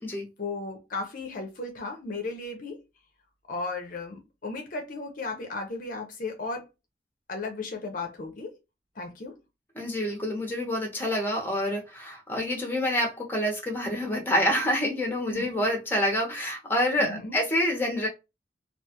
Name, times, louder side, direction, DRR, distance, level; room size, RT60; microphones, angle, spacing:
voice 1, 0.4-2.8 3.5-6.7 7.3-8.6 8.9-9.4 15.3-15.6 17.0-17.4, left 3 dB, 50° left, 0.6 m, -35 dB
voice 2, 9.8-18.1, left 1 dB, 10° left, 0.8 m, -27 dB
2.4 x 2.3 x 2.7 m
head